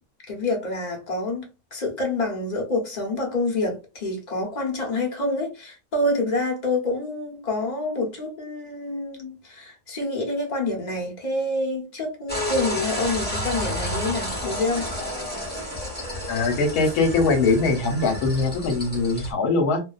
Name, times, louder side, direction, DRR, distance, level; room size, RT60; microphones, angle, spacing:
voice 1, 0.3-1.4 1.7-14.9, left 2 dB, 35° left, 0.8 m, -27 dB
sound 1, 12.3-19.3, left 1 dB, 10° left, 0.7 m, -31 dB
voice 2, 16.3-19.8, left 3 dB, 75° left, 1.3 m, -22 dB
2.7 x 2.3 x 2.3 m
omnidirectional pair, 1.7 m